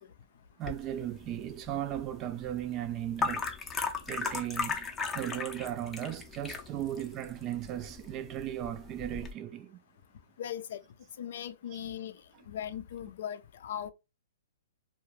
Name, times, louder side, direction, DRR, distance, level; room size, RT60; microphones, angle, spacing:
sound 1, 0.6-9.3, left 5 dB, 15° left, 0.6 m, -38 dB
voice 1, 0.6-3.5 4.1-9.8, right 12 dB, 30° right, 0.3 m, -36 dB
voice 2, 10.4-10.8 11.2-12.2 12.5-13.9, left 9 dB, 65° left, 0.4 m, -38 dB
2.3 x 2.1 x 3.1 m
hypercardioid pair, 130°, 0 cm